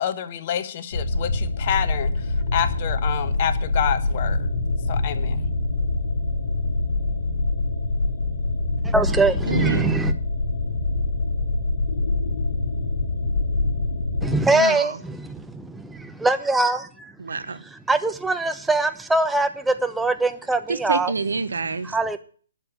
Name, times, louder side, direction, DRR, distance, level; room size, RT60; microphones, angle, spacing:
voice 1, 0.0-4.5 4.9-5.5, left 9 dB, 40° left, 1.4 m, -28 dB
sound 1, 0.9-14.4, left 2 dB, 60° left, 2.9 m, -24 dB
voice 2, 8.8-10.1 14.2-17.1 17.6-21.1 21.8-22.2, right 2 dB, 5° right, 1.0 m, -23 dB
voice 3, 9.5-9.9 14.5-14.9 17.2-17.6 20.7-21.9, right 4 dB, 70° right, 1.1 m, -27 dB
11.5 x 7.0 x 8.7 m
figure-of-eight pair, 135°, 0 cm